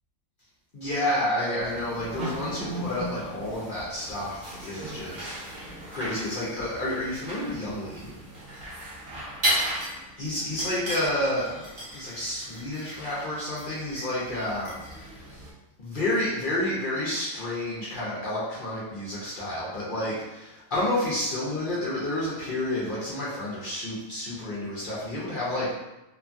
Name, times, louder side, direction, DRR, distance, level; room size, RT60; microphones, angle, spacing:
voice 1, 0.7-5.3 5.9-8.1 10.2-15.1 15.8-25.8, left 1 dB, 50° left, -7 dB, 0.6 m, -30 dB
sound 1, 1.6-15.5, right 1 dB, 45° right, 0.9 m, -36 dB
3.0 x 2.3 x 2.5 m, 0.99 s
omnidirectional pair, 1.5 m